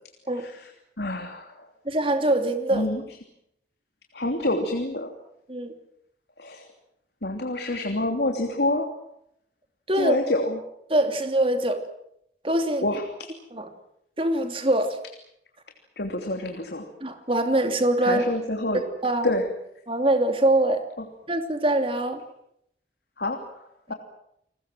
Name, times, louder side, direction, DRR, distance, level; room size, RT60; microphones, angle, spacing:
voice 1, 0.4-0.7 1.0-1.7 2.7-3.0 4.1-5.1 6.4-6.7 7.2-8.9 10.0-10.6 12.8-13.3 16.0-16.9 18.0-18.8 19.2-19.5 21.0-21.1 23.2-23.9, left 1 dB, 65° left, 4 dB, 3.0 m, -27 dB
voice 2, 1.8-2.9 5.5-5.7 9.9-10.2 10.9-11.8 12.4-12.8 13.5-13.7 14.2-15.0 17.0-18.2 19.0-19.3 19.9-20.8 21.3-22.2 23.9-24.0, right 1 dB, 30° right, 7 dB, 2.9 m, -23 dB
30.0 x 20.5 x 7.6 m, 0.76 s
head